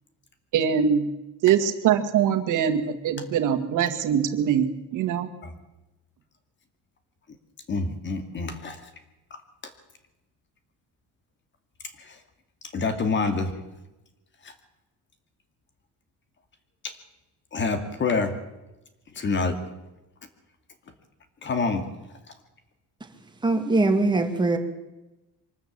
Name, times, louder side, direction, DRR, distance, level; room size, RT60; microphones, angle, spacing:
voice 1, 0.5-1.1 1.4-5.3, right 8 dB, 70° right, 6 dB, 2.0 m, -23 dB
voice 2, 7.7-8.8 12.1-12.2 12.7-13.5 17.5-18.3 19.2-19.6 21.4-21.9, left 4 dB, 35° left, 8 dB, 2.3 m, -26 dB
voice 3, 23.4-24.6, right 2 dB, 15° right, 4 dB, 2.4 m, -21 dB
24.0 x 13.5 x 8.7 m, 1.0 s
cardioid pair, 150°, 32 cm